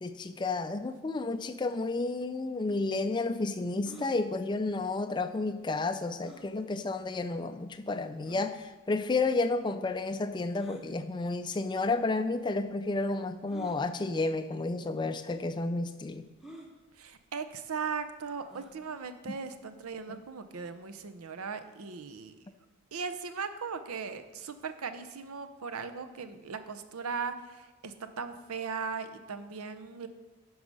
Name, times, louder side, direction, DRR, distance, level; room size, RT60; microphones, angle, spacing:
voice 1, 0.0-16.3 19.3-19.4 20.1-20.2, left 3 dB, 20° left, 10 dB, 0.3 m, -31 dB
sound 1, 3.8-4.1 6.2-6.5 7.3-7.4 8.2-8.5 10.5-10.9 11.9-12.0 13.5-13.8 14.7-14.9 15.1-15.2 16.4-16.7 18.4-18.8, right 1 dB, ahead, 0.8 m, -49 dB
voice 2, 17.0-22.4 22.9-30.1, right 5 dB, 85° right, 9 dB, 0.7 m, -38 dB
11.5 x 4.8 x 5.4 m, 1.2 s
head